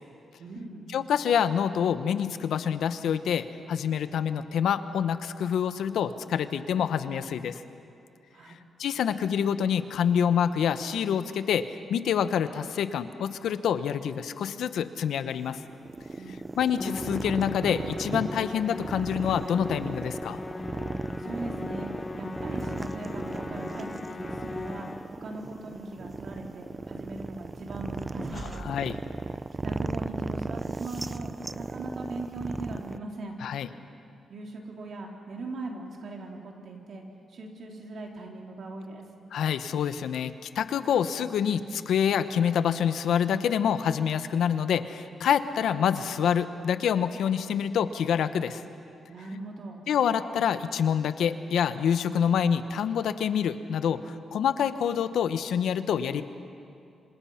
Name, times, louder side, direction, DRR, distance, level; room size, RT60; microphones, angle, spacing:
voice 1, 0.4-0.9 8.3-8.6 16.2-16.4 21.2-21.9 22.2-23.9 24.2-28.6 29.6-33.4 34.3-37.0 37.3-39.0 49.1-49.8, right 2 dB, 65° right, 0 dB, 3.9 m, -40 dB
voice 2, 0.9-7.6 8.8-15.6 16.6-20.4 28.3-29.0 33.4-33.7 39.3-48.6 49.9-54.0 54.3-56.2, left 8 dB, 80° left, 11 dB, 1.0 m, -27 dB
sound 1, 15.3-33.0, right 3 dB, 30° right, 0.6 m, -36 dB
Musical instrument, 16.8-25.3, left 3 dB, 30° left, 1.1 m, -39 dB
26.5 x 26.5 x 5.8 m, 2.6 s
cardioid pair, 85°, 0 cm